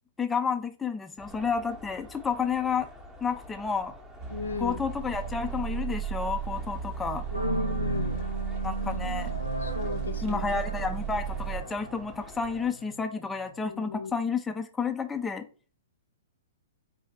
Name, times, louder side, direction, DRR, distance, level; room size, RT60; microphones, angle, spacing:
voice 1, 0.2-2.9 3.2-4.0 4.6-7.2 8.6-9.3 10.2-15.5, left 5 dB, 10° left, 7 dB, 0.4 m, -30 dB
sound 1, 1.2-12.7, equal, 5° right, 0.8 m, -48 dB
sound 2, 4.2-11.6, right 9 dB, 35° right, 0.8 m, -34 dB
voice 2, 4.3-4.8 7.3-8.2 9.6-10.6 13.7-14.1, left 3 dB, 70° left, 10 dB, 0.6 m, -35 dB
sound 3, 7.3-13.6, left 1 dB, 80° right, 0.7 m, -37 dB
4.5 x 2.7 x 3.5 m, 0.38 s
figure-of-eight pair, 110°, 0 cm